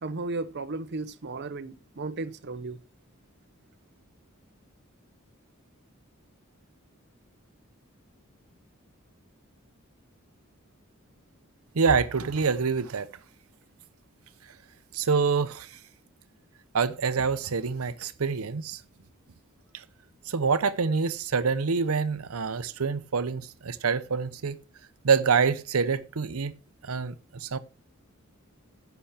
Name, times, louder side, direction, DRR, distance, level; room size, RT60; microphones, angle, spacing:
voice 1, 0.0-2.8, right 3 dB, 55° right, 0.7 m, -34 dB
voice 2, 11.7-13.1 14.9-15.8 16.7-18.8 19.7-19.8 20.3-24.6 25.0-26.5 26.8-27.6, right 5 dB, 90° right, 0.7 m, -26 dB
10.0 x 7.0 x 5.8 m
head